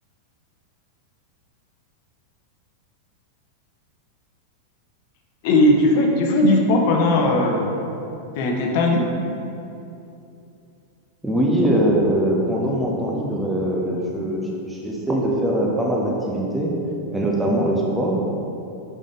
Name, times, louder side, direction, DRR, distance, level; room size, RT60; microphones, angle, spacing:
voice 1, 5.4-7.7 8.4-9.1, left 1 dB, 50° left, 1 dB, 0.9 m, -18 dB
voice 2, 11.2-16.7 17.1-18.2, right 1 dB, 5° right, -3 dB, 0.8 m, -22 dB
5.5 x 5.1 x 3.8 m, 2.7 s
figure-of-eight pair, 90°, 0 cm